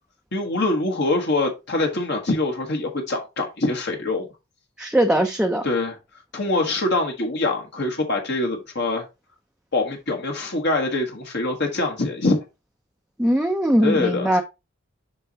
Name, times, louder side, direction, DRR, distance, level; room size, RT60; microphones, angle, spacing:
voice 1, 0.3-4.3 5.6-6.0 6.3-9.0 9.7-12.4 13.8-14.4, left 2 dB, 55° left, 1.3 m, -24 dB
voice 2, 4.8-5.6 13.2-14.4, right 1 dB, 5° right, 0.5 m, -20 dB
6.8 x 5.4 x 2.8 m
head